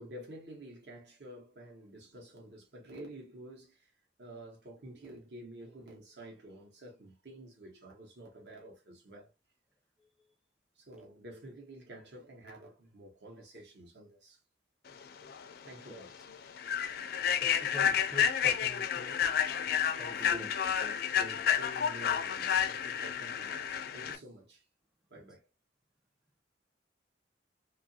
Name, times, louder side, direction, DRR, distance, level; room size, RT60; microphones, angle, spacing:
voice 1, 0.0-3.9 4.2-9.3 10.8-14.4 15.7-16.1 20.2-20.6 21.2-24.6 25.1-25.5, right 1 dB, 65° right, 0.9 m, -49 dB
Human voice / Train, 15.3-15.4 15.9-16.1 16.6-24.2, left 8 dB, 55° left, 0.4 m, -30 dB
voice 2, 17.4-19.2 20.0-20.5 20.8-21.0, equal, 5° right, 0.5 m, -46 dB
2.7 x 2.4 x 2.6 m
head